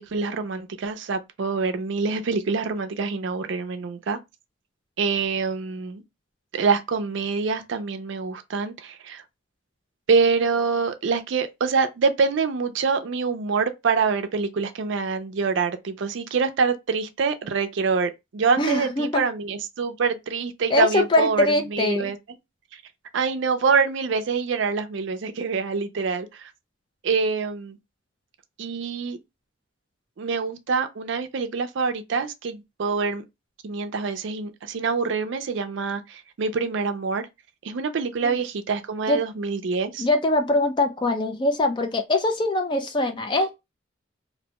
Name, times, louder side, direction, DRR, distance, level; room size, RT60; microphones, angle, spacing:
voice 1, 0.0-4.2 5.0-6.0 6.5-9.2 10.1-22.2 23.1-26.5 27.0-27.8 28.6-29.2 30.2-33.2 33.6-37.3 37.6-40.1, right 5 dB, 65° right, 0.4 m, -25 dB
voice 2, 18.6-19.2 20.7-22.1 38.2-38.4 39.1-39.2 40.0-43.5, left 2 dB, 25° left, 0.4 m, -22 dB
2.6 x 2.1 x 2.9 m
head